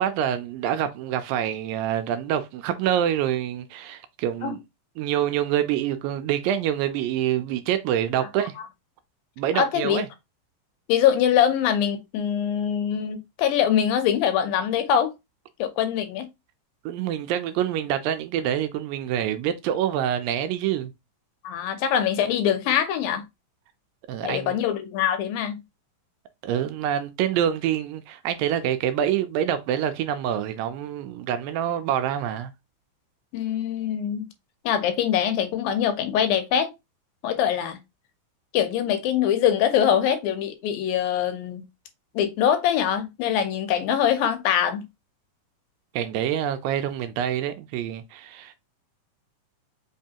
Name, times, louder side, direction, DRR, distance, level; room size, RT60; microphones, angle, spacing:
voice 1, 0.0-4.6 5.0-8.6 9.4-10.1 16.9-20.9 24.1-24.6 26.4-32.5 45.9-48.5, right 10 dB, 80° right, 2.1 m, -26 dB
voice 2, 9.5-10.0 10.9-15.1 15.6-16.3 21.4-23.2 24.2-25.6 33.3-34.3 34.6-36.7 37.2-37.8 38.5-41.6 42.1-44.8, left 9 dB, 80° left, 2.4 m, -23 dB
5.2 x 3.2 x 2.8 m
omnidirectional pair, 4.2 m